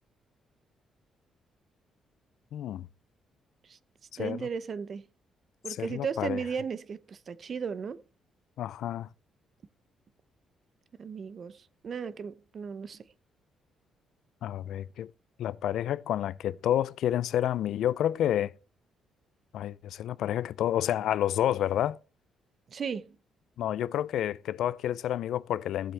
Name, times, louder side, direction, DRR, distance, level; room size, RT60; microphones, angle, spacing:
voice 1, 2.5-2.9 4.1-4.5 5.8-6.4 8.6-9.1 14.4-15.1 15.4-18.5 19.5-22.0 23.6-25.9, left 11 dB, 75° left, 0.4 m, -29 dB
voice 2, 4.2-5.0 5.6-8.0 11.0-13.0 22.7-23.2, right 6 dB, 50° right, 0.8 m, -35 dB
15.0 x 7.7 x 3.4 m
cardioid pair, 90°, 0 cm